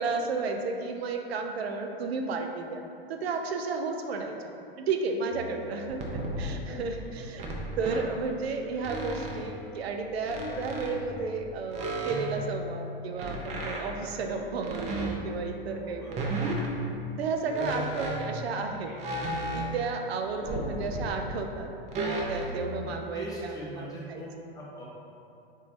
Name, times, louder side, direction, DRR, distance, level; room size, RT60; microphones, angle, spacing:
voice 1, 0.0-2.8 3.1-6.0 6.4-7.4 7.8-16.5 17.2-18.9 19.5-21.7 22.3-23.2 23.8-24.2, right 4 dB, 80° right, 4 dB, 0.5 m, -33 dB
Male speech man speaking, 5.2-5.4 5.7-6.2 6.6-9.8 10.3-11.6 11.9-12.7 13.9-16.3 16.7-16.9 17.4-19.8 20.2-21.0 21.5-21.6, left 3 dB, 50° left, 0.6 m, -47 dB
sound 1, 5.3-6.6 7.3-8.0 8.8-9.6 10.3-11.2 11.7-14.0 14.6-15.6 16.1-16.9 17.5-18.4 19.0-20.0 20.4-21.2 21.9-22.9, right 1 dB, 25° right, 0.4 m, -34 dB
voice 2, 7.0-7.4 8.6-8.7 16.0-16.2 22.8-24.3 24.5-24.8, right 1 dB, 10° left, -6 dB, 0.7 m, -42 dB
3.6 x 3.1 x 2.5 m, 2.6 s
hypercardioid pair, 105°, 31 cm